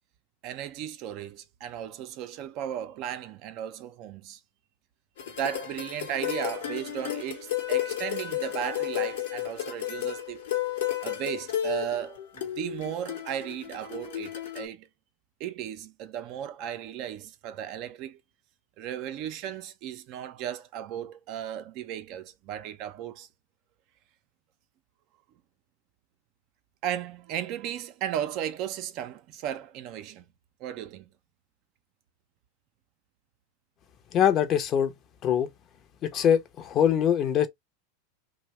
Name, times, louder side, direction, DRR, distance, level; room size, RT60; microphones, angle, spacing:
voice 1, 0.4-4.4 5.4-14.9 15.4-18.2 18.8-23.3 26.8-30.2 30.6-31.1, right 10 dB, 50° right, 0.4 m, -35 dB
sound 1, 5.2-14.7, left 12 dB, 70° left, 1.0 m, -33 dB
voice 2, 34.1-34.9 35.2-35.5 36.0-37.5, left 9 dB, 40° left, 0.6 m, -23 dB
2.7 x 2.1 x 3.0 m
hypercardioid pair, 90°, 0 cm